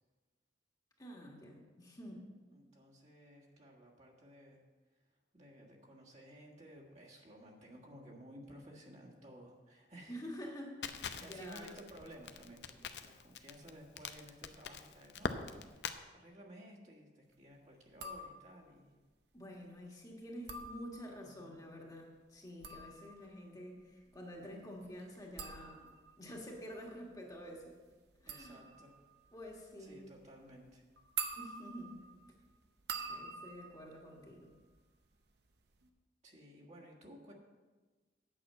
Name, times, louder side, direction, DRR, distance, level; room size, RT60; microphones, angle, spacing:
voice 1, 1.0-2.3 10.1-11.7 19.3-25.9 26.2-27.7 28.2-28.6 29.3-30.1 31.4-32.0 33.1-34.5, equal, 20° left, -1 dB, 1.6 m, -48 dB
voice 2, 2.5-4.6 5.3-10.2 11.2-19.0 21.2-21.7 28.2-28.9 29.8-30.8 36.2-37.3, equal, 40° right, -3 dB, 1.6 m, -55 dB
Crackle, 10.8-16.0, left 5 dB, 65° left, 0.6 m, -43 dB
sound 1, 17.9-18.7 20.3-21.4 22.4-35.1 35.4-35.9, right 5 dB, 65° right, 0.9 m, -48 dB
8.7 x 6.2 x 7.5 m, 1.3 s
head